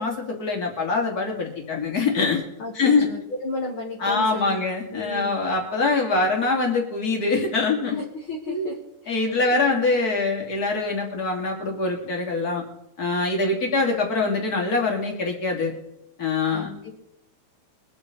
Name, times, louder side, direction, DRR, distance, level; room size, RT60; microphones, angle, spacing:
voice 1, 0.0-2.4 2.7-3.1 4.0-8.0 8.5-8.7 9.1-12.6 13.0-15.7 16.2-16.7, left 3 dB, 30° left, 0 dB, 3.1 m, -24 dB
voice 2, 2.6-4.6 4.9-5.5 8.0-8.8 9.0-9.8 16.5-16.9, left 2 dB, 45° left, -1 dB, 2.4 m, -34 dB
24.0 x 8.7 x 4.2 m, 0.86 s
omnidirectional pair, 3.5 m